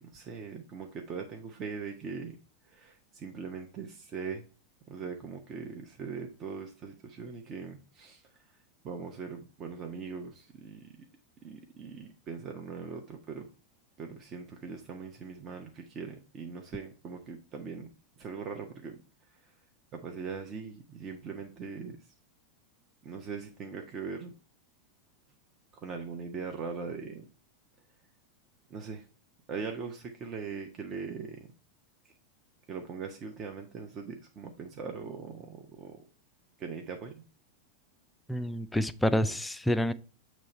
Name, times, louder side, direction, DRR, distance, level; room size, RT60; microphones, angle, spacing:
voice 1, 0.0-2.3 2.7-4.4 4.9-8.2 8.8-10.9 11.4-13.5 14.0-17.9 18.2-19.0 19.9-22.0 23.0-24.3 25.8-27.3 28.7-29.0 29.5-31.5 32.0-32.1 32.7-36.0 36.6-37.2, right 5 dB, 30° right, 0.8 m, -40 dB
voice 2, 38.3-39.9, equal, 5° left, 0.4 m, -28 dB
7.5 x 3.1 x 4.3 m
figure-of-eight pair, 90°, 0 cm